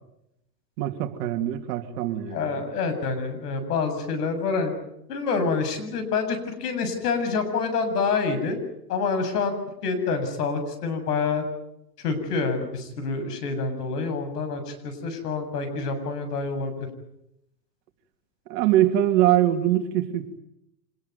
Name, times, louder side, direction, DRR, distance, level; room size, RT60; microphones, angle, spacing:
voice 1, 0.8-2.5 18.5-20.3, right 12 dB, 45° right, 6 dB, 3.0 m, -23 dB
voice 2, 2.3-4.7 5.1-8.6 8.9-9.5 9.8-11.4 12.0-16.9, left 4 dB, 70° left, 8 dB, 7.2 m, -27 dB
26.0 x 20.0 x 9.6 m, 0.82 s
hypercardioid pair, 125°, 49 cm